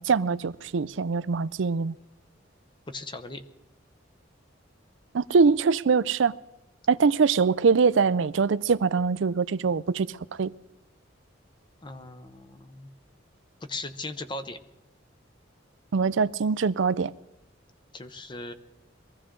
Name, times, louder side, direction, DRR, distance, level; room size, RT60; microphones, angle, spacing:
voice 1, 0.0-1.9 5.1-6.4 6.9-10.5 15.9-17.1, right 5 dB, 75° right, 0.5 m, -23 dB
voice 2, 2.9-3.4 11.8-12.9 13.6-14.6 17.9-18.5, left 2 dB, 25° left, 0.8 m, -38 dB
23.0 x 15.0 x 3.8 m
head